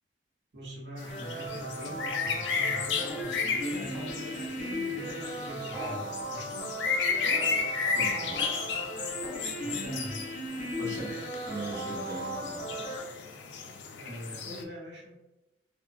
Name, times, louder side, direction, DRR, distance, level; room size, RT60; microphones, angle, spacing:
voice 1, 0.5-6.7 9.6-10.2 14.0-15.2, equal, 65° right, -3 dB, 0.8 m, -42 dB
sound 1, 1.0-14.6, left 5 dB, 70° left, 0.3 m, -34 dB
sound 2, 1.1-13.0, equal, 35° left, 1.4 m, -37 dB
sound 3, 3.0-3.5 3.9-4.4 5.7-6.2 7.2-7.8 8.3-8.8 9.2-9.6, right 1 dB, ahead, 0.4 m, -43 dB
voice 2, 7.9-8.5 10.7-11.2 11.5-12.9, right 1 dB, 20° left, -6 dB, 1.0 m, -39 dB
3.0 x 2.2 x 2.4 m, 1.0 s
head